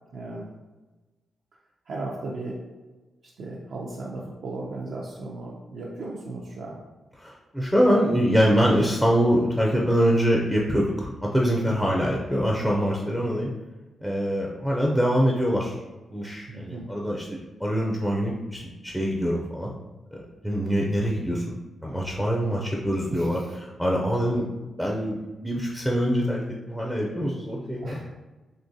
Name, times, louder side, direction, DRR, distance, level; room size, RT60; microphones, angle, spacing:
voice 1, 0.1-0.5 1.9-2.6 3.2-6.8 11.6-12.0 13.2-13.5 16.5-17.0 23.1-23.6 24.3-24.5 27.8-28.1, right 2 dB, 65° right, -4 dB, 0.4 m, -36 dB
voice 2, 7.2-13.5 14.0-15.8 16.1-19.7 20.1-21.5 21.8-23.4 23.8-24.5 24.8-28.0, equal, ahead, -3 dB, 0.4 m, -24 dB
3.7 x 2.8 x 2.6 m, 1.2 s
cardioid pair, 105°, 0 cm